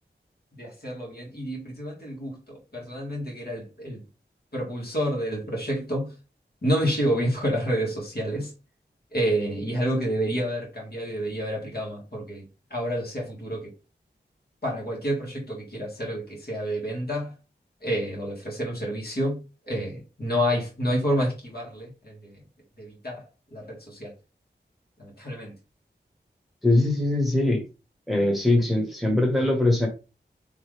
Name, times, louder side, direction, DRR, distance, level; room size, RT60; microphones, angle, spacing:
voice 1, 0.6-4.0 4.5-6.1 6.6-8.5 9.1-12.4 12.7-13.7 14.6-17.3 17.8-22.4 22.8-23.2 23.5-24.1 25.0-25.5, equal, 60° left, 1.8 m, -29 dB
voice 2, 26.6-27.6 28.1-29.9, left 2 dB, ahead, 1.2 m, -22 dB
3.8 x 3.1 x 3.2 m
wide cardioid pair, 65°, 18 cm